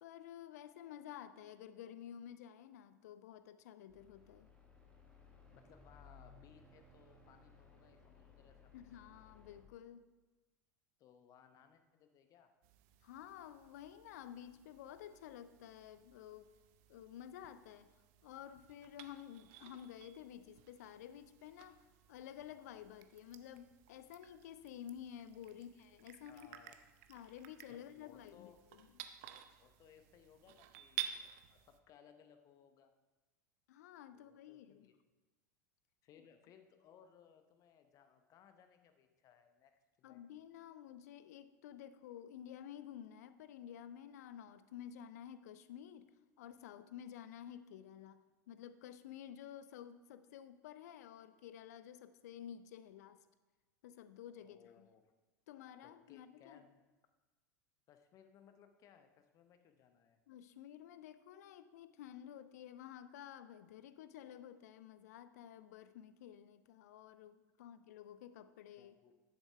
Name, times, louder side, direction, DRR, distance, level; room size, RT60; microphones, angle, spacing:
voice 1, 0.0-4.5 8.7-10.1 13.0-16.5 16.9-17.9 18.2-26.5 27.1-28.9 33.7-34.9 40.0-53.2 53.8-54.9 55.5-56.6 60.3-69.0, left 10 dB, 55° left, 14 dB, 0.5 m, -52 dB
sound 1, 3.9-9.6, left 4 dB, 10° left, 1.7 m, -62 dB
voice 2, 5.5-8.8 11.0-12.5 25.5-25.6 26.2-26.8 27.7-28.6 29.6-32.9 34.1-35.0 36.0-40.2 54.4-55.1 55.8-56.8 57.9-60.2 68.8-69.2, left 8 dB, 35° left, 8 dB, 0.8 m, -64 dB
sound 2, 12.6-31.8, right 11 dB, 50° right, 0.6 m, -53 dB
11.0 x 6.7 x 3.4 m, 1.2 s
figure-of-eight pair, 85°, 10 cm